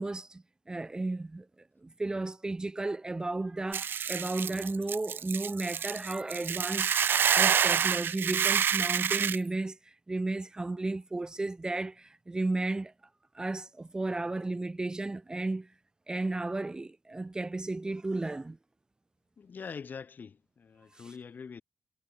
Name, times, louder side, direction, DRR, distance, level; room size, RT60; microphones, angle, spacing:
voice 1, 0.0-1.5 1.8-6.9 7.3-12.9 13.3-15.7 16.1-18.6 21.0-21.1, right 2 dB, 20° right, 0.9 m, -34 dB
Hiss / Boiling, 3.7-9.4, right 8 dB, 60° right, 0.4 m, -28 dB
voice 2, 19.4-21.6, left 6 dB, 50° left, 3.8 m, -44 dB
cardioid pair, 100°, 4 cm